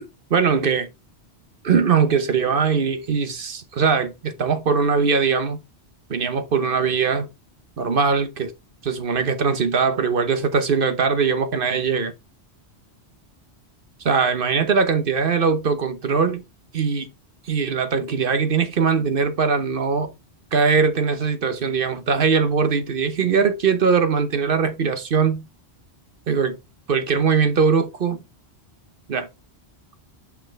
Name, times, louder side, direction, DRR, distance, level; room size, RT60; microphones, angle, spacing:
voice 1, 0.3-0.9 1.6-5.6 6.1-7.3 7.8-8.5 8.8-12.1 14.0-16.4 16.7-17.1 17.5-20.1 20.5-25.5 26.3-26.6 26.9-28.2 29.1-29.3, right 5 dB, 55° right, 1.1 m, -21 dB
6.4 x 5.9 x 3.3 m
omnidirectional pair, 1.1 m